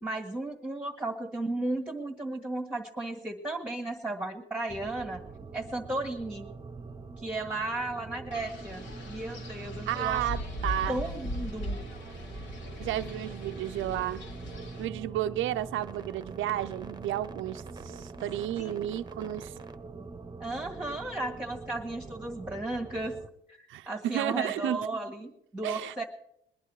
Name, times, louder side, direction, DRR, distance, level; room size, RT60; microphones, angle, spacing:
voice 1, 0.0-5.2 5.5-6.5 7.2-10.3 10.9-11.8 18.6-18.9 20.4-23.1 23.5-26.0, right 2 dB, 5° right, 1.7 m, -35 dB
sound 1, 4.7-23.3, right 4 dB, 20° right, 1.0 m, -44 dB
Wind, 8.3-14.9, left 1 dB, 70° left, 2.6 m, -39 dB
voice 2, 9.9-11.0 12.8-14.2 14.8-19.5 23.7-24.8 25.6-26.0, right 13 dB, 75° right, 0.5 m, -32 dB
21.5 x 10.0 x 4.8 m
cardioid pair, 90°, 20 cm